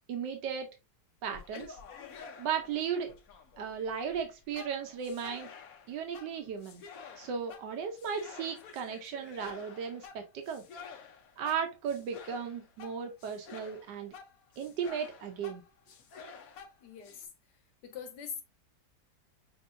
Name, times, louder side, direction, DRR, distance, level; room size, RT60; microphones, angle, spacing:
voice 1, 0.1-0.7 1.2-1.8 2.4-3.1 3.6-5.5 5.9-6.8 7.2-10.6 11.4-14.1 14.6-15.6, right 7 dB, 90° right, 1.4 m, -36 dB
sound 1, 1.2-17.3, left 6 dB, 65° left, 1.1 m, -50 dB
voice 2, 16.8-17.3 17.8-18.4, left 7 dB, 85° left, 1.5 m, -42 dB
6.4 x 2.9 x 2.5 m
omnidirectional pair, 1.8 m